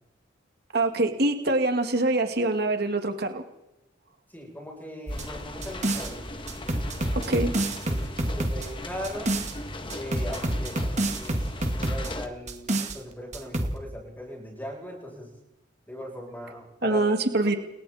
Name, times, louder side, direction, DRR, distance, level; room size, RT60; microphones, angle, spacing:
voice 1, 0.7-3.4 7.1-7.5 16.8-17.6, right 2 dB, 55° right, 6 dB, 2.4 m, -24 dB
voice 2, 4.3-6.2 7.9-9.3 9.9-10.9 11.1-11.5 11.8-15.3 15.9-17.2 17.4-17.5, equal, 10° left, -1 dB, 7.9 m, -39 dB
sound 1, 5.1-12.3, left 1 dB, 25° left, 1.7 m, -38 dB
sound 2, 5.1-6.1 6.5-9.5 9.9-12.1 12.5-13.0 13.3-13.8, right 1 dB, 35° right, 2.1 m, -28 dB
29.5 x 22.5 x 4.4 m, 0.88 s
head